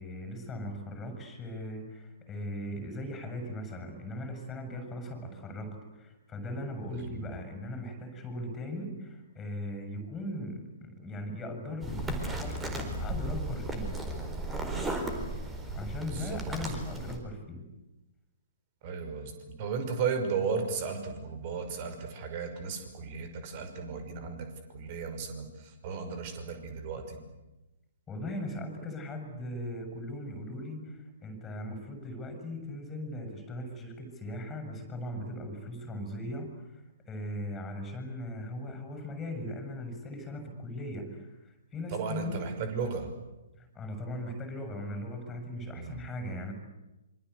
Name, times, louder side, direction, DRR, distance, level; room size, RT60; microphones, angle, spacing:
voice 1, 0.0-14.0 15.7-17.7 28.1-42.4 43.6-46.5, left 1 dB, 15° left, 6 dB, 7.0 m, -39 dB
voice 2, 6.9-7.3 16.1-16.4 18.8-27.2 41.9-43.1 45.8-46.0, right 5 dB, 35° right, 7 dB, 5.8 m, -35 dB
sound 1, 11.8-17.2, right 1 dB, 10° right, 4.5 m, -35 dB
27.0 x 25.0 x 8.2 m, 1.0 s
figure-of-eight pair, 120°, 0 cm